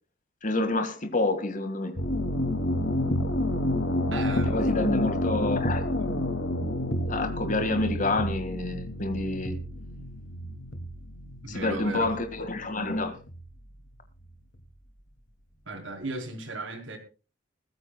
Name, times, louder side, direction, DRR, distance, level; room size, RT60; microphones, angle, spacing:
voice 1, 0.4-1.9 4.5-6.2 7.1-9.6 11.5-13.2, left 2 dB, 45° left, 1.9 m, -28 dB
sound 1, 2.0-13.5, left 1 dB, 70° left, 2.4 m, -29 dB
voice 2, 4.1-4.6 11.4-12.1 15.7-17.0, right 2 dB, 90° right, 4.2 m, -36 dB
21.5 x 14.5 x 2.3 m
head